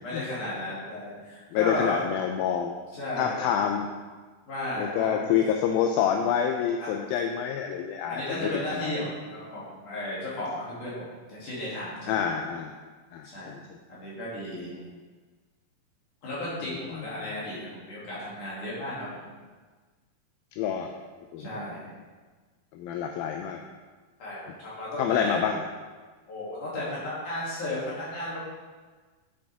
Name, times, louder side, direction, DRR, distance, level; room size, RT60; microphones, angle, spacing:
voice 1, 0.0-2.1 2.9-3.5 4.5-5.3 6.8-6.9 8.1-12.2 13.2-13.5 13.9-14.8 16.2-19.2 21.4-21.9 24.2-25.4 26.3-28.4, left 1 dB, 55° left, -9 dB, 4.1 m, -34 dB
voice 2, 1.5-2.8 3.2-3.9 4.8-8.9 12.1-12.8 13.1-13.6 16.6-17.3 20.6-20.9 21.3-21.5 22.7-23.6 25.0-25.7, left 8 dB, 80° left, 3 dB, 2.2 m, -28 dB
9.4 x 7.6 x 3.6 m, 1.4 s
omnidirectional pair, 4.4 m